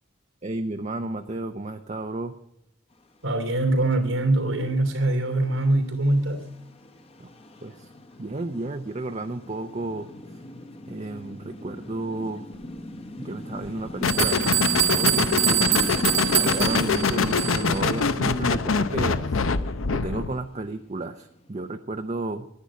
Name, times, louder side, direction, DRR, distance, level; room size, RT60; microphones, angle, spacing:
voice 1, 0.4-2.3 7.2-7.3 7.6-7.9 8.2-10.1 10.9-12.4 13.2-14.5 14.9-15.6 16.3-19.4 19.9-22.5, right 2 dB, 35° right, 6 dB, 0.6 m, -32 dB
voice 2, 3.2-6.5, right 2 dB, 90° right, 5 dB, 2.9 m, -23 dB
sound 1, 5.0-21.7, left 1 dB, 30° left, 1.0 m, -39 dB
sound 2, 13.6-13.7 14.1-17.8, right 13 dB, 55° right, 1.3 m, -25 dB
sound 3, 14.0-20.4, left 5 dB, 80° left, 0.7 m, -24 dB
11.5 x 10.5 x 8.4 m, 0.76 s
head